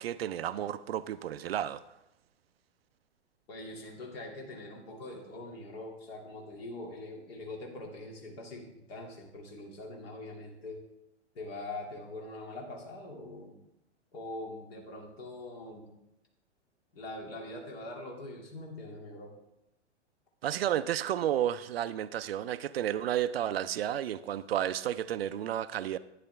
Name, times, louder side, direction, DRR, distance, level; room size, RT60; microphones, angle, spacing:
voice 1, 0.0-1.8 20.4-26.0, right 11 dB, 55° right, 14 dB, 0.5 m, -32 dB
voice 2, 3.5-8.6 8.9-10.8 11.3-13.6 14.1-15.9 16.9-19.3, left 2 dB, 55° left, 1 dB, 2.5 m, -43 dB
11.5 x 9.7 x 3.4 m, 0.87 s
figure-of-eight pair, 105°, 36 cm